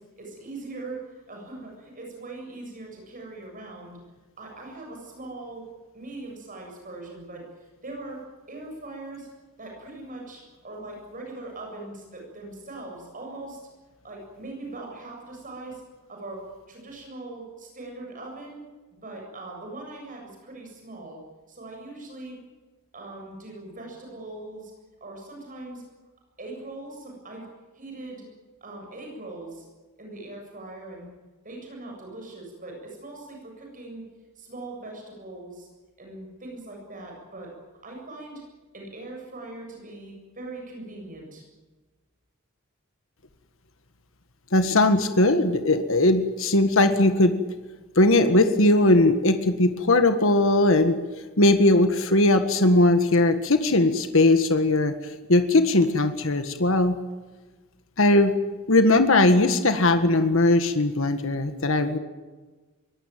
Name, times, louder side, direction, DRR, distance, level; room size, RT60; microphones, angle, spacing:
voice 1, 0.0-4.0 4.4-5.6 5.9-8.2 8.5-9.3 9.6-13.6 14.0-15.8 16.1-18.6 19.0-21.2 21.5-22.4 22.9-24.7 25.0-25.8 26.4-27.5 27.7-28.3 28.6-29.7 30.0-31.1 31.4-34.0 34.4-35.7 36.0-37.5 37.8-38.4 38.7-41.4, right 2 dB, 40° right, 1 dB, 7.6 m, -40 dB
voice 2, 44.5-47.3 48.0-51.0 51.4-54.9 55.3-57.0 58.0-58.3 58.7-62.0, left 2 dB, 65° left, 8 dB, 1.8 m, -19 dB
23.0 x 19.0 x 9.3 m, 1.3 s
head